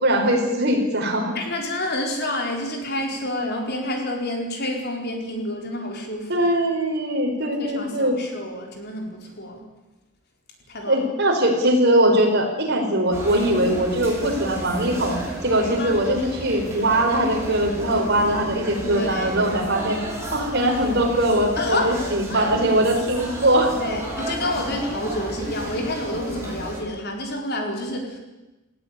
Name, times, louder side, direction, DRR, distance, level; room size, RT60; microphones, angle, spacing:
voice 1, 0.0-1.4 6.3-8.2 10.9-15.2 15.4-20.0 20.3-23.7, right 1 dB, 55° right, 2 dB, 5.1 m, -21 dB
voice 2, 1.3-6.5 7.6-9.6 10.7-11.0 15.8-16.1 18.8-19.3 21.6-22.0 22.3-22.5 23.7-28.2, left 1 dB, 50° left, 2 dB, 4.6 m, -29 dB
sound 1, 13.1-26.8, right 1 dB, 15° right, 6.5 m, -33 dB
19.0 x 16.5 x 10.0 m, 1.1 s
head